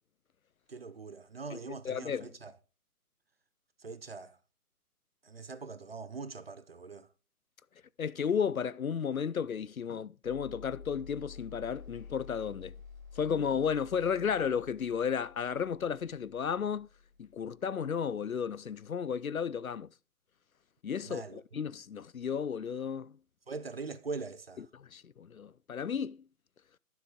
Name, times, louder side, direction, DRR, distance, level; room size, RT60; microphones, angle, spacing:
voice 1, 0.7-2.5 3.8-4.4 5.2-7.1 21.0-21.4 23.5-24.7, right 4 dB, 40° right, 0.7 m, -42 dB
voice 2, 1.5-2.3 8.0-12.7 13.1-16.9 17.2-19.9 20.8-23.1 24.7-26.2, left 7 dB, 65° left, 0.5 m, -33 dB
sound 1, 10.2-18.3, left 6 dB, 15° right, 1.8 m, -51 dB
12.0 x 7.2 x 3.6 m
figure-of-eight pair, 145°, 46 cm